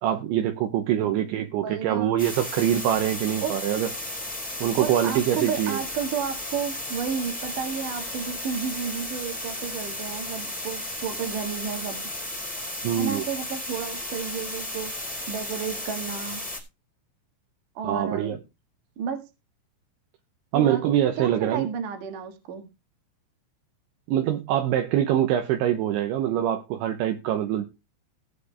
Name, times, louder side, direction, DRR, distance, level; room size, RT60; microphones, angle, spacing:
voice 1, 0.0-3.9 4.6-5.8 12.8-13.2 17.8-18.4 20.5-21.7 24.1-27.7, right 11 dB, 75° right, 6 dB, 2.9 m, -24 dB
voice 2, 1.0-2.2 3.4-3.6 4.8-12.1 12.9-16.4 17.8-18.4 19.0-19.2 20.5-20.8 21.2-22.7, right 7 dB, 55° right, 6 dB, 2.4 m, -32 dB
sound 1, 2.2-16.6, left 1 dB, 5° left, 1.6 m, -34 dB
17.5 x 7.6 x 3.3 m, 0.26 s
omnidirectional pair, 6.0 m